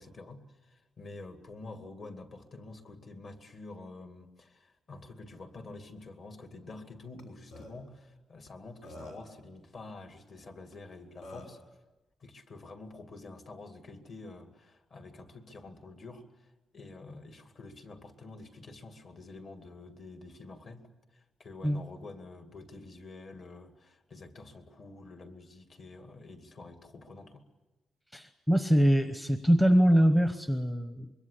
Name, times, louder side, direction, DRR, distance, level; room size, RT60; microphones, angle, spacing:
voice 1, 0.0-11.6 12.2-20.8 21.1-27.4, left 3 dB, 40° left, 6 dB, 2.3 m, -48 dB
Burping eructation, 7.2-7.3 7.5-7.7 8.5-8.6 8.8-9.3 10.7-10.8 11.2-11.6, left 1 dB, 85° left, 5.5 m, -46 dB
voice 2, 28.1-31.1, equal, 5° left, 8 dB, 0.9 m, -24 dB
25.5 x 23.0 x 8.4 m, 1.1 s
wide cardioid pair, 165°, 0 cm